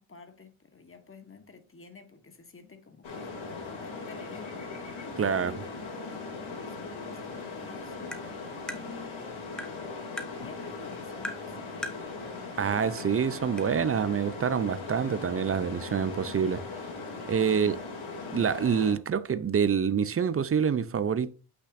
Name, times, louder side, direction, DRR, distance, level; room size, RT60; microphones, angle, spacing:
voice 1, 0.0-4.7 5.0-8.1 8.6-9.4 10.4-11.9 17.5-18.0, left 5 dB, 25° left, 1.4 m, -50 dB
sound 1, 3.0-18.9, left 3 dB, 65° left, 2.8 m, -39 dB
voice 2, 5.2-5.6 12.6-16.6 17.3-17.8 18.3-21.3, right 7 dB, 30° right, 0.4 m, -26 dB
Tap, 8.1-8.2 8.7-8.8 9.6-9.7 10.2-10.3 11.2-11.4 11.8-12.0 13.0-13.1 13.6-13.7, equal, ahead, 0.9 m, -37 dB
8.3 x 5.9 x 2.6 m
cardioid pair, 80°, 50 cm